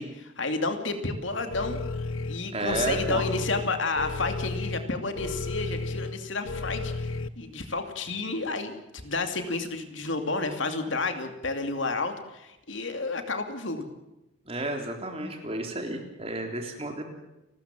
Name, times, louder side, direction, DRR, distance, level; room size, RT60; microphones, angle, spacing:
voice 1, 0.0-1.8 2.3-8.8 9.0-13.9, left 3 dB, 65° left, 6 dB, 2.6 m, -31 dB
sound 1, 1.5-7.3, left 3 dB, 85° left, 1.0 m, -33 dB
voice 2, 2.5-3.2 14.4-17.0, right 2 dB, 30° right, 3 dB, 3.6 m, -32 dB
30.0 x 14.0 x 7.5 m, 0.96 s
head